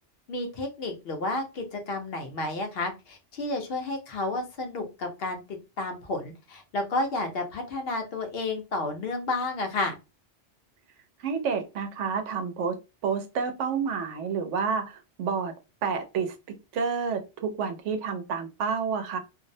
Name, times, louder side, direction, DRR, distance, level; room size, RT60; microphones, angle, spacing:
voice 1, 0.3-10.0, left 2 dB, 60° left, 4 dB, 0.8 m, -31 dB
voice 2, 11.2-12.8 13.0-15.5 15.8-16.3 16.7-19.2, right 6 dB, 90° right, 6 dB, 0.9 m, -29 dB
2.5 x 2.0 x 2.6 m, 0.27 s
omnidirectional pair, 1.2 m